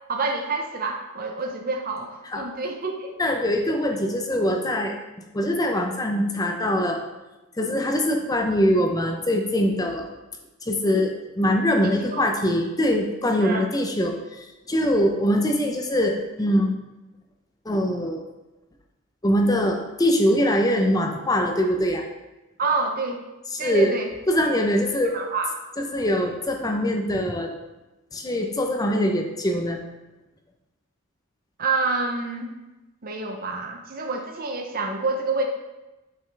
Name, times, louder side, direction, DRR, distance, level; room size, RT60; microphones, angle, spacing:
voice 1, 0.1-3.3 11.8-12.3 13.4-13.7 22.6-23.2 23.6-24.1 25.0-25.5 31.6-32.5 33.0-35.5, right 3 dB, 40° right, 3 dB, 0.7 m, -28 dB
voice 2, 3.2-5.0 5.3-7.0 7.6-10.1 10.6-16.7 17.7-18.2 19.2-22.0 23.5-23.9 24.3-25.2 25.8-27.5 28.1-29.8, equal, 15° left, 2 dB, 0.7 m, -23 dB
7.8 x 5.5 x 3.4 m, 1.0 s
head